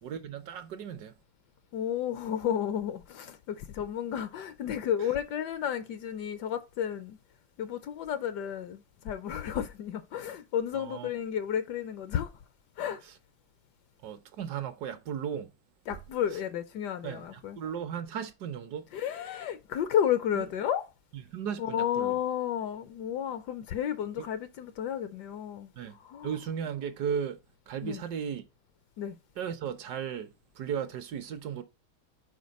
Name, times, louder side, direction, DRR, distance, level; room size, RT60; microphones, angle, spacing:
voice 1, 0.0-1.1 10.7-11.1 14.0-15.5 17.0-18.8 20.4-20.5 21.3-22.2 24.2-24.3 25.7-25.9 26.2-27.4 27.7-28.4 29.4-31.6, right 8 dB, 70° right, 1.2 m, -36 dB
voice 2, 1.7-7.2 7.6-12.3 12.8-13.0 15.9-17.6 18.9-20.9 21.6-26.4 27.8-28.0 29.0-29.1, left 9 dB, 75° left, 1.1 m, -32 dB
5.2 x 4.3 x 5.1 m
omnidirectional pair, 1.9 m